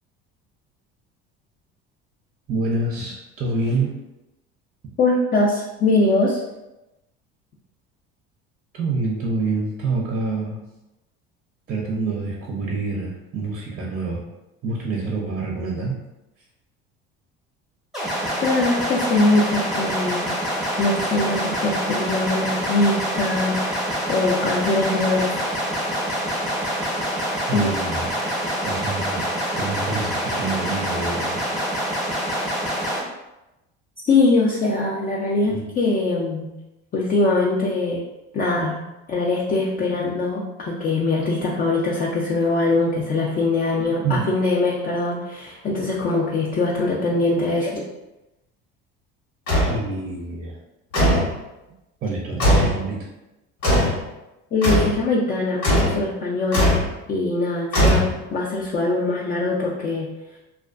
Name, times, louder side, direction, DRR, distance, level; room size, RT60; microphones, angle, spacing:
voice 1, 2.5-4.0 8.7-10.6 11.7-14.2 14.6-16.0 27.5-28.1 28.6-29.3 29.5-31.5 35.4-35.6 38.7-38.9 39.5-39.6 40.3-40.4 43.8-44.2 49.7-50.6 52.0-53.1, right 3 dB, 30° right, -2 dB, 0.5 m, -27 dB
voice 2, 5.0-6.4 18.4-20.4 20.8-25.3 27.5-27.7 34.0-36.6 36.9-38.0 38.3-38.8 39.1-47.8 54.5-56.8 57.1-60.1, left 2 dB, 30° left, -3 dB, 0.4 m, -22 dB
sound 1, 17.9-33.0, equal, ahead, 0.8 m, -26 dB
sound 2, 49.5-49.8 50.9-51.3 52.4-52.8 53.6-54.0 54.6-55.0 55.6-56.0 56.5-56.9 57.7-58.4, equal, 85° left, 1.1 m, -18 dB
2.4 x 2.2 x 2.3 m, 0.97 s
supercardioid pair, 90°, 30 cm